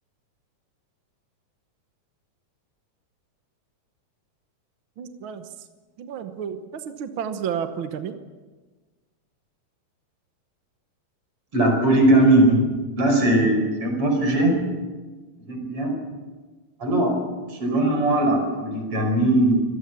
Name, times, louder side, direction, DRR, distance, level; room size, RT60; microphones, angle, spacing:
voice 1, 5.0-5.4 6.0-8.1, right 8 dB, 60° right, 8 dB, 1.3 m, -31 dB
voice 2, 11.5-12.7 13.0-14.6 15.5-15.9 16.8-17.2 17.5-19.6, right 1 dB, 45° right, 3 dB, 6.1 m, -19 dB
25.5 x 18.5 x 6.9 m, 1.3 s
omnidirectional pair, 3.6 m